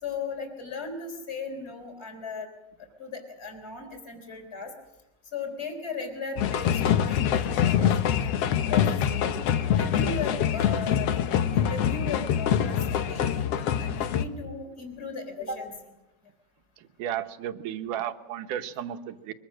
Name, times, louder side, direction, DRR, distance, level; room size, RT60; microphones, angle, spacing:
voice 1, 0.0-2.5 3.0-4.7 5.3-9.4 9.7-11.2 11.5-13.5 13.8-15.7, left 4 dB, 20° left, 5 dB, 3.8 m, -37 dB
sound 1, 6.4-14.2, left 9 dB, 65° left, 1.6 m, -25 dB
voice 2, 16.8-19.3, right 10 dB, 75° right, 9 dB, 2.5 m, -34 dB
23.0 x 22.5 x 6.3 m, 0.94 s
omnidirectional pair, 3.8 m